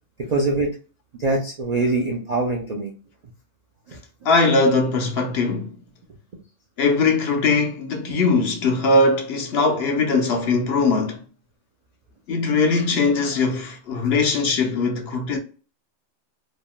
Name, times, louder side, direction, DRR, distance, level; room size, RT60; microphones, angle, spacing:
voice 1, 0.3-0.7 1.2-2.9 3.9-4.0, right 2 dB, 55° right, 0.4 m, -23 dB
voice 2, 4.2-5.7 6.8-11.2 12.3-15.4, left 3 dB, 60° left, 0.8 m, -20 dB
3.4 x 2.1 x 2.3 m
omnidirectional pair, 1.3 m